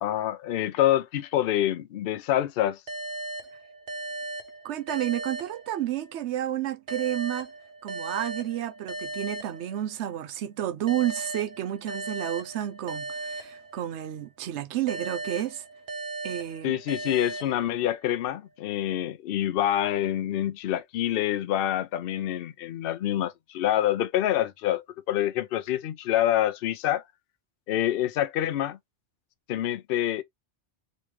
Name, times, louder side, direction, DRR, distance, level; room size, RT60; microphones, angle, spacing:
voice 1, 0.0-2.8 16.6-27.0 27.7-28.8 29.5-30.2, left 12 dB, 65° left, 0.7 m, -26 dB
sound 1, 2.9-6.2 6.9-10.2 10.9-14.2 14.9-18.2, right 2 dB, 55° right, 1.0 m, -37 dB
voice 2, 4.6-7.5 7.8-15.6 16.2-16.7, right 12 dB, 80° right, 0.9 m, -31 dB
3.1 x 3.1 x 3.0 m
omnidirectional pair, 1.2 m